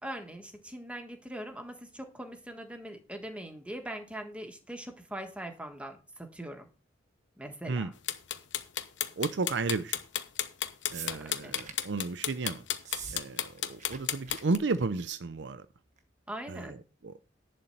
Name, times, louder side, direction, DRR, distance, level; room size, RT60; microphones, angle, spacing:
voice 1, 0.0-6.7 7.4-7.9 11.0-11.6 16.3-16.8, right 1 dB, 5° right, 1.6 m, -42 dB
sound 1, 8.1-14.6, left 11 dB, 75° left, 1.0 m, -32 dB
voice 2, 9.2-10.0 10.9-12.6 13.1-15.7 16.5-16.8 17.0-17.1, right 3 dB, 65° right, 0.6 m, -33 dB
sound 2, 10.9-11.9 12.8-13.2 13.5-14.0 14.3-14.4 14.7-15.0 16.0-16.1, right 7 dB, 40° right, 1.3 m, -43 dB
11.0 x 4.3 x 7.9 m
head